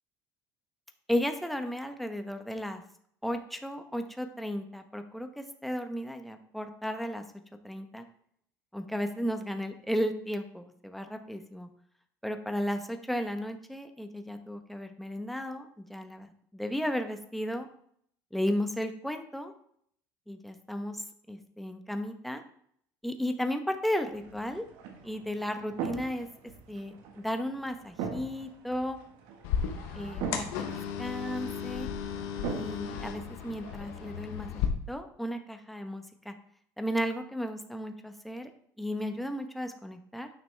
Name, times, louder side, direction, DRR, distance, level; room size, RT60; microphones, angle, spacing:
voice 1, 1.1-2.8 3.2-7.2 7.6-8.0 8.7-11.7 12.2-17.7 18.3-19.5 20.3-22.4 23.0-24.6 25.0-26.3 26.7-29.0 29.9-31.9 32.5-34.5 34.9-36.3 36.8-38.5 38.8-40.3, equal, ahead, 6 dB, 0.9 m, -34 dB
sound 1, 24.1-34.2, right 6 dB, 75° right, 1.6 m, -42 dB
sound 2, 29.4-34.7, left 8 dB, 85° left, 1.0 m, -35 dB
9.4 x 5.8 x 3.4 m, 0.66 s
supercardioid pair, 95°, 9 cm